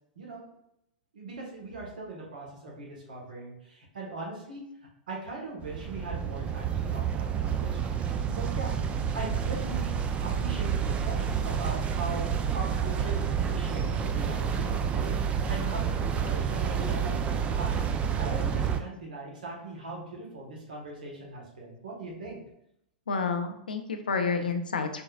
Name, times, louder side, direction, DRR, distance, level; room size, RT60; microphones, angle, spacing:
voice 1, 1.1-4.6 5.1-8.8 9.1-12.3 12.5-22.4, right 2 dB, 75° right, -3 dB, 1.4 m, -40 dB
sound 1, 5.6-18.8, right 7 dB, 25° right, 0.4 m, -29 dB
voice 2, 23.1-25.0, left 5 dB, 80° left, 6 dB, 0.6 m, -29 dB
4.3 x 3.8 x 2.4 m, 0.78 s
figure-of-eight pair, 95°, 5 cm